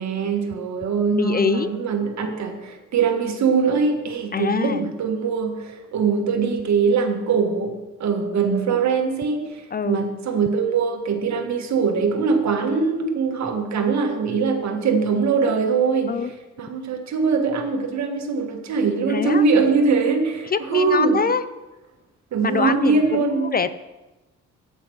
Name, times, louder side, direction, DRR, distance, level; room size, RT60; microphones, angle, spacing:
voice 1, 0.0-16.2 16.6-21.2 22.3-23.5, right 5 dB, 65° right, 4 dB, 1.8 m, -22 dB
voice 2, 1.1-1.7 4.3-4.8 9.7-10.0 16.1-16.3 19.1-19.4 20.5-21.4 22.4-23.7, left 6 dB, 30° left, 13 dB, 0.5 m, -24 dB
9.0 x 8.1 x 6.4 m, 1.1 s
cardioid pair, 90°, 30 cm